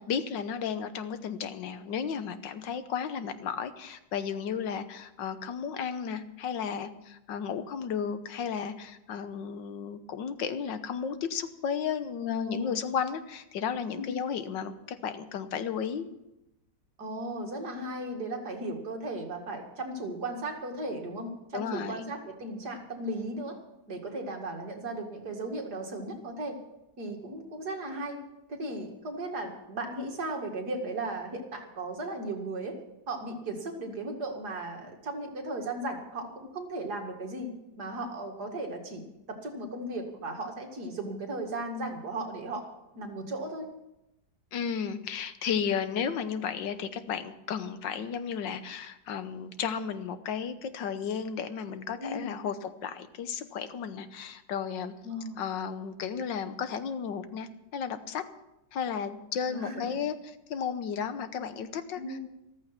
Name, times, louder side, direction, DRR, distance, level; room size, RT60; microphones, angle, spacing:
voice 1, 0.0-16.1 21.5-22.0 44.5-54.9 55.4-58.2 58.7-60.2 60.5-62.2, left 7 dB, 85° left, 11 dB, 1.7 m, -34 dB
voice 2, 12.2-12.8 13.9-14.1 17.0-23.6 23.9-26.6 27.0-28.2 28.5-32.8 33.1-37.5 37.8-42.6 43.0-43.7 52.0-52.3 55.0-55.4 59.5-59.9 62.0-62.2, right 1 dB, 60° right, 3 dB, 2.7 m, -36 dB
14.0 x 14.0 x 5.9 m, 0.89 s
omnidirectional pair, 1.9 m